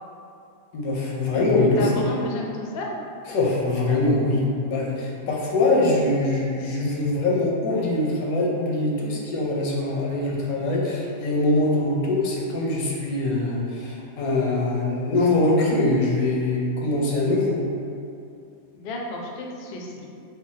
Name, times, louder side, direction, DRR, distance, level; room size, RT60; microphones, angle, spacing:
voice 1, 0.7-2.1 3.3-17.6, left 2 dB, 90° left, -3 dB, 1.1 m, -23 dB
voice 2, 1.8-2.9 18.7-20.1, left 2 dB, 65° left, 0 dB, 0.6 m, -32 dB
3.2 x 2.1 x 3.9 m, 2.5 s
omnidirectional pair, 1.5 m